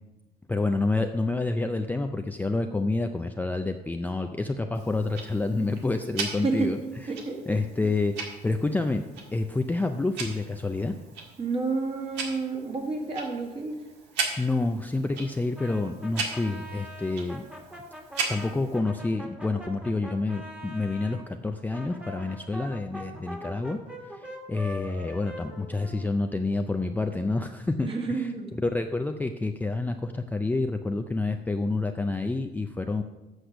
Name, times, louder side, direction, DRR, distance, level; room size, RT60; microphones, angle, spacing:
voice 1, 0.5-6.8 7.5-9.0 9.3-10.9 14.4-17.4 18.3-23.8 24.1-28.3 28.6-33.0, left 3 dB, 10° left, 5 dB, 0.4 m, -28 dB
Tick-tock, 4.7-18.8, right 4 dB, 85° right, 1.8 m, -38 dB
voice 2, 11.4-13.8 27.8-28.5, right 4 dB, 35° right, 1 dB, 1.9 m, -29 dB
Brass instrument, 15.5-21.2 21.7-26.5, equal, 5° right, 1.7 m, -43 dB
7.9 x 6.5 x 6.1 m, 1.1 s
cardioid pair, 110°, 17 cm